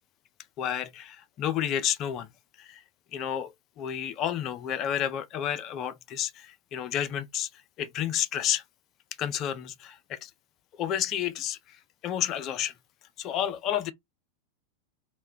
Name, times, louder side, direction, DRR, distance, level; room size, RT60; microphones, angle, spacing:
voice 1, 0.6-2.3 2.6-2.8 3.1-7.5 7.8-8.6 9.2-10.3 10.7-11.8 12.0-12.7 13.2-13.9, left 10 dB, 35° left, 0.4 m, -31 dB
2.1 x 2.1 x 3.7 m
figure-of-eight pair, 90°, 0 cm